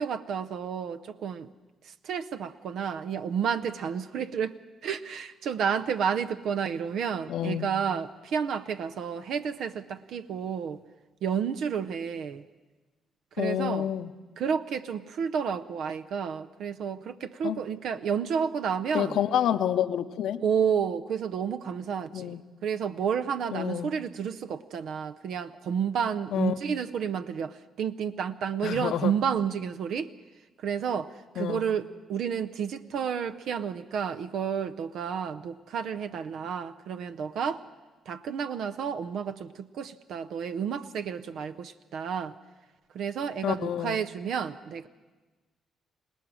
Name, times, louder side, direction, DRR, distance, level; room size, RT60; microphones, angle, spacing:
voice 1, 0.0-1.5 2.0-10.8 11.2-12.4 13.4-13.9 14.4-19.2 20.4-22.4 22.6-30.1 30.6-37.6 38.1-42.3 42.9-44.9, right 7 dB, 75° right, 9 dB, 0.6 m, -31 dB
voice 2, 7.3-7.7 13.4-14.1 17.4-17.6 18.9-20.4 22.1-22.4 23.5-23.9 26.3-26.6 28.6-29.1 31.4-31.6 43.4-44.0, left 10 dB, 75° left, 11 dB, 0.8 m, -28 dB
26.5 x 18.0 x 6.2 m, 1.2 s
cardioid pair, 90°, 0 cm